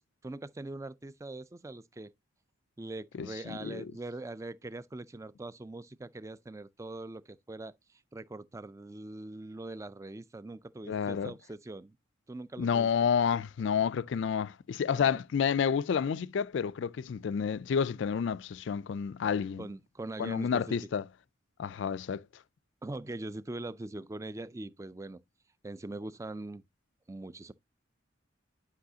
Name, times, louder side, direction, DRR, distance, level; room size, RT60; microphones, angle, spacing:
voice 1, 0.0-2.1 2.8-12.0 12.3-12.9 14.9-15.2 19.6-20.8 22.8-25.2 25.6-26.6 27.1-27.5, right 2 dB, 15° right, 0.3 m, -42 dB
voice 2, 3.2-3.9 10.9-11.3 12.6-19.6 20.2-21.0 21.6-22.2, left 7 dB, 60° left, 0.3 m, -30 dB
10.5 x 5.5 x 2.7 m
head